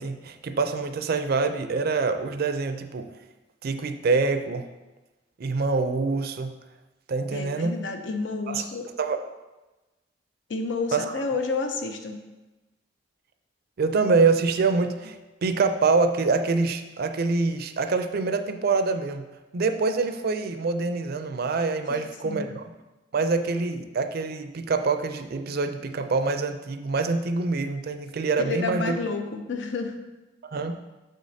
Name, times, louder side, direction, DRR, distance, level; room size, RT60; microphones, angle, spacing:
voice 1, 0.0-3.1 3.6-4.7 5.4-6.5 7.1-7.8 8.5-8.7 9.0-9.2 10.9-11.1 13.8-19.2 19.5-22.6 23.1-28.9 30.5-30.8, right 4 dB, 55° right, 8 dB, 0.4 m, -25 dB
voice 2, 7.3-8.9 10.5-12.2 21.9-22.5 28.4-30.0, left 3 dB, 80° left, 5 dB, 0.7 m, -30 dB
6.7 x 6.3 x 2.7 m, 1.1 s
head